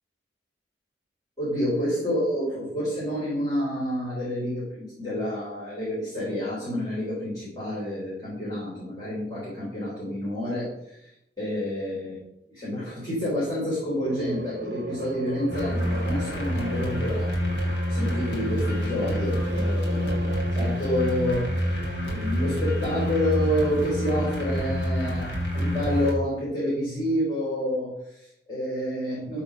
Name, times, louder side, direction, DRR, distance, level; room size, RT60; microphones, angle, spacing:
voice 1, 1.4-11.1 11.4-12.2 12.5-17.3 17.6-21.7 22.0-29.4, equal, 25° left, -8 dB, 4.0 m, -29 dB
sound 1, 14.0-23.7, right 3 dB, 60° right, 0.7 m, -39 dB
sound 2, 15.5-26.1, left 1 dB, 85° left, 3.0 m, -27 dB
13.5 x 4.9 x 5.1 m, 0.79 s
head